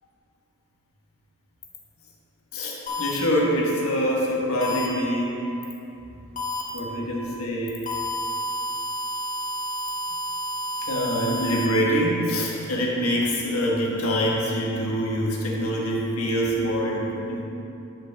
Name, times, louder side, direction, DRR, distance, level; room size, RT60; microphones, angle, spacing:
voice 1, 2.5-5.4 6.7-7.8 10.8-17.4, equal, 90° left, -3 dB, 1.4 m, -25 dB
sound 1, 2.9-3.1 4.6-4.9 6.4-6.6 7.9-11.7, equal, 40° left, 0.9 m, -30 dB
11.0 x 5.3 x 3.5 m, 2.9 s
head